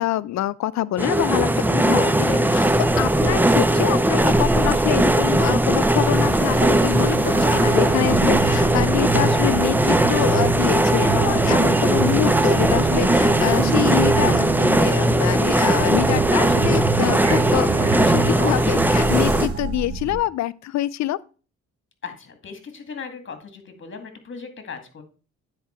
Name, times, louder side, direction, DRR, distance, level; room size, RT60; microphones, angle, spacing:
voice 1, 0.0-17.7 18.0-21.2, left 14 dB, 65° left, 0.5 m, -26 dB
sound 1, 1.0-19.5, right 1 dB, 5° right, 0.6 m, -19 dB
sound 2, 2.6-20.2, right 3 dB, 50° right, 2.0 m, -33 dB
sound 3, 7.7-18.3, right 13 dB, 75° right, 0.6 m, -29 dB
voice 2, 22.0-25.0, left 5 dB, 40° left, 2.1 m, -38 dB
9.4 x 4.6 x 4.4 m
cardioid pair, 90°, 30 cm